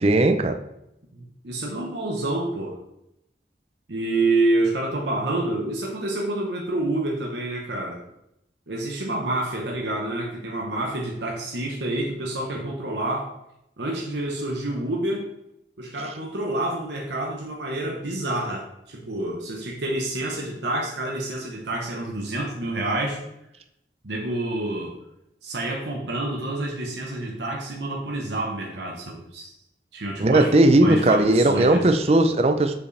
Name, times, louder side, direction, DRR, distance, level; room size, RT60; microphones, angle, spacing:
voice 1, 0.0-0.5 30.2-32.7, right 2 dB, 35° right, 7 dB, 0.5 m, -18 dB
voice 2, 1.1-2.8 3.9-8.0 8.7-13.3 13.8-15.3 15.8-23.2 24.0-24.9 25.4-29.5 29.9-30.5 30.8-31.9, right 2 dB, 75° right, -1 dB, 1.0 m, -28 dB
7.4 x 5.0 x 3.3 m, 0.82 s
head